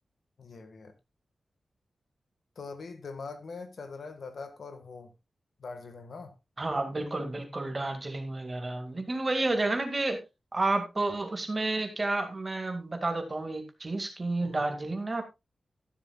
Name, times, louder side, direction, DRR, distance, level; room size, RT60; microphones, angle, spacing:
voice 1, 0.4-0.9 2.6-5.1 5.6-6.4 14.4-14.7, left 4 dB, 60° left, 1.7 m, -42 dB
voice 2, 6.6-10.2 10.5-15.2, right 2 dB, 25° right, 2.2 m, -31 dB
13.5 x 11.5 x 2.4 m
wide cardioid pair, 180°, 0 cm